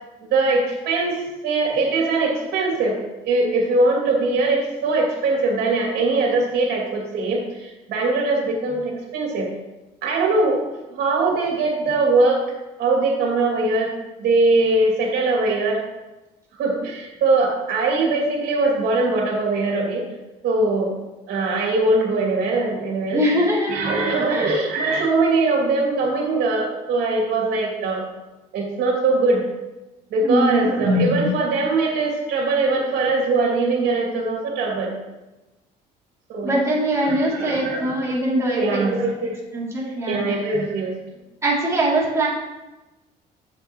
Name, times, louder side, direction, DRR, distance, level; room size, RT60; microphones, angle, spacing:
voice 1, 0.3-3.0 3.2-9.5 10.0-10.6 10.9-12.4 12.8-13.9 14.2-15.8 16.6-20.0 20.4-20.9 21.3-23.2 23.7-28.0 28.5-29.4 30.1-34.9 36.3-36.5 37.0-38.2 38.5-39.4 40.1-40.9, right 3 dB, 70° right, -1 dB, 2.7 m, -21 dB
voice 2, 23.1-24.0 24.3-24.5 30.2-30.7 36.4-38.8 39.5-40.4 41.4-42.3, right 1 dB, 15° right, -6 dB, 3.0 m, -22 dB
7.8 x 7.8 x 3.1 m, 1.1 s
cardioid pair, 110°, 17 cm